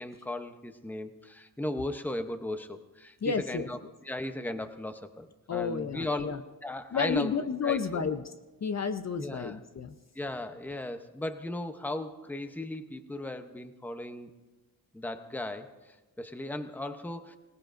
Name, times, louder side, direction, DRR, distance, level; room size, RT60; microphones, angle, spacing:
voice 1, 0.0-3.8 4.0-6.3 6.6-7.3 7.6-8.1 9.2-9.6 10.1-14.3 14.9-17.4, left 1 dB, 5° left, 8 dB, 0.8 m, -37 dB
voice 2, 3.2-3.7 5.5-6.4 6.9-8.3 8.6-9.9, left 6 dB, 45° left, 9 dB, 0.6 m, -31 dB
25.5 x 18.0 x 2.6 m, 1.2 s
wide cardioid pair, 130°, 36 cm